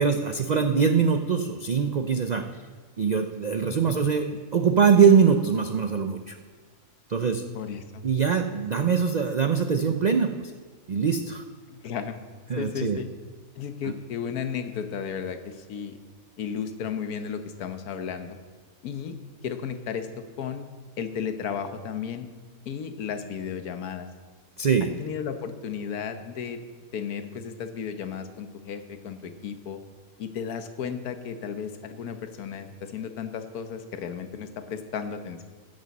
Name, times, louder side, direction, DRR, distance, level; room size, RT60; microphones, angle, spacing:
voice 1, 0.0-2.4 3.0-4.3 4.5-6.4 7.1-7.4 8.0-10.5 10.9-11.4 12.5-13.0 24.6-24.9, right 6 dB, 65° right, 6 dB, 0.4 m, -22 dB
voice 2, 7.5-8.0 11.7-12.2 12.6-13.1 13.6-16.0 16.4-18.4 18.8-19.2 19.4-20.7 21.0-22.3 22.7-24.1 25.0-26.6 26.9-29.8 30.2-35.4, left 7 dB, 85° left, 8 dB, 1.4 m, -34 dB
14.5 x 10.5 x 4.1 m, 1.5 s
omnidirectional pair, 1.5 m